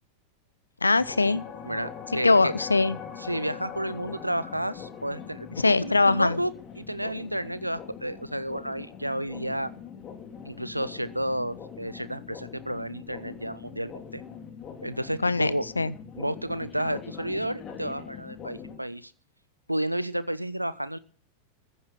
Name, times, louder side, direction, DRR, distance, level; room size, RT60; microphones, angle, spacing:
voice 1, 0.8-1.4 2.2-3.0 5.6-6.4 15.2-15.5 15.8-15.9, left 3 dB, 80° left, 19 dB, 0.7 m, -21 dB
sound 1, 1.0-18.8, left 7 dB, 30° left, 2.9 m, -42 dB
voice 2, 1.6-2.5 3.2-9.7 10.4-14.2 14.8-15.6 16.2-19.1 19.7-21.0, right 1 dB, 90° right, 16 dB, 0.7 m, -31 dB
14.5 x 9.7 x 5.9 m, 0.43 s
figure-of-eight pair, 90°, 0 cm